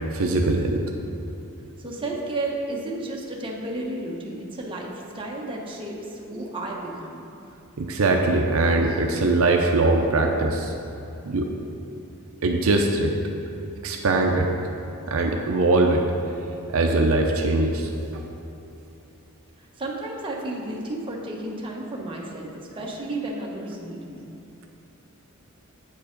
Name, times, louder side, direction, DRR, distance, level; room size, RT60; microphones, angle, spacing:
voice 1, 0.1-0.8 7.8-10.7 11.2-11.5 12.4-13.1 13.8-14.5 15.1-16.0 16.7-18.2, right 2 dB, 70° right, 2 dB, 0.6 m, -21 dB
voice 2, 1.8-7.2 19.8-24.3, right 2 dB, 25° right, -2 dB, 0.9 m, -32 dB
8.3 x 4.7 x 5.1 m, 2.8 s
head